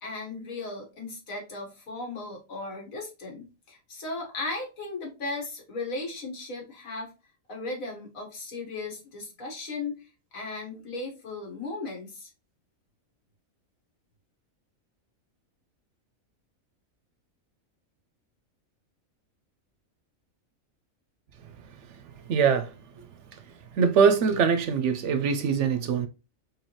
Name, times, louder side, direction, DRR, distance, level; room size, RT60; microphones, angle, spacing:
voice 1, 0.0-7.1 7.5-12.3, left 3 dB, 80° left, 1.8 m, -36 dB
voice 2, 22.3-22.7 23.8-26.1, right 6 dB, 65° right, 0.8 m, -22 dB
4.8 x 2.6 x 2.9 m
omnidirectional pair, 1.4 m